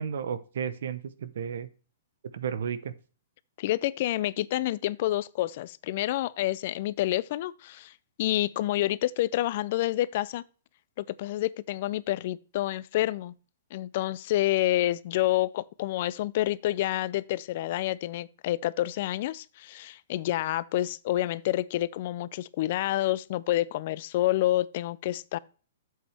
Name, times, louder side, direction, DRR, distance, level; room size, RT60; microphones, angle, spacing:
voice 1, 0.0-1.7 2.3-2.9, right 7 dB, 70° right, 0.9 m, -33 dB
voice 2, 3.6-7.9 8.2-10.4 11.0-13.3 13.7-25.4, left 15 dB, 55° left, 0.4 m, -28 dB
8.4 x 7.6 x 3.4 m
hypercardioid pair, 135°, 0 cm